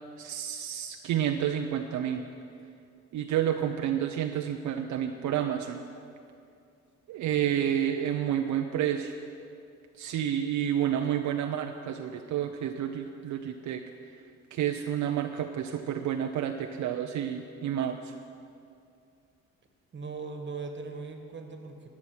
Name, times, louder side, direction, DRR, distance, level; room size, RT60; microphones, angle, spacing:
voice 1, 0.2-2.3 3.1-5.8 7.1-9.1 10.0-13.8 14.5-18.1, right 10 dB, 75° right, 4 dB, 0.7 m, -30 dB
voice 2, 19.9-21.9, right 4 dB, 40° right, 5 dB, 1.6 m, -39 dB
13.0 x 6.0 x 8.9 m, 2.5 s
cardioid pair, 90°, 30 cm